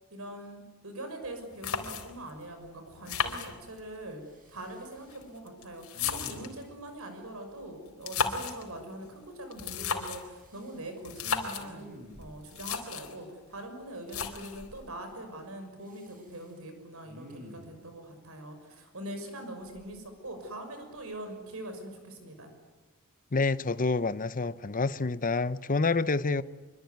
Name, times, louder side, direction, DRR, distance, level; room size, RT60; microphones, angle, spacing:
voice 1, 0.1-4.2 4.5-11.9 12.2-22.5, right 1 dB, 70° right, 6.4 m, -43 dB
sound 1, 1.2-1.3 1.6-2.3 3.1-4.0 4.9-6.6 7.9-8.6 9.5-10.3 11.0-11.7 12.2-12.3 12.5-13.2 14.1-14.7, left 6 dB, 75° left, 4.0 m, -34 dB
Respiratory sounds, 2.5-2.9 3.1-3.9 4.2-5.3 5.9-6.8 10.4-11.0 11.5-12.6 14.2-14.8 15.8-16.5 17.0-17.8 19.6-20.6 21.0-21.2, equal, 40° right, 6.4 m, -51 dB
voice 2, 23.3-26.4, left 3 dB, 40° left, 0.8 m, -28 dB
25.5 x 24.5 x 9.5 m
head